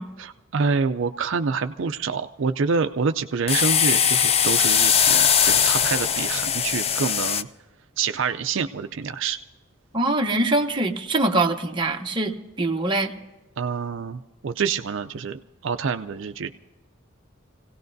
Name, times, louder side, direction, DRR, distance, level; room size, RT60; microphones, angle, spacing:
voice 1, 0.2-7.5 8.0-9.4 13.6-16.5, right 5 dB, 65° right, 8 dB, 0.5 m, -27 dB
sound 1, 3.5-7.4, left 8 dB, 30° left, 0.4 m, -20 dB
voice 2, 9.9-13.1, right 2 dB, 25° right, 2 dB, 0.9 m, -23 dB
26.0 x 17.0 x 2.6 m, 1.2 s
head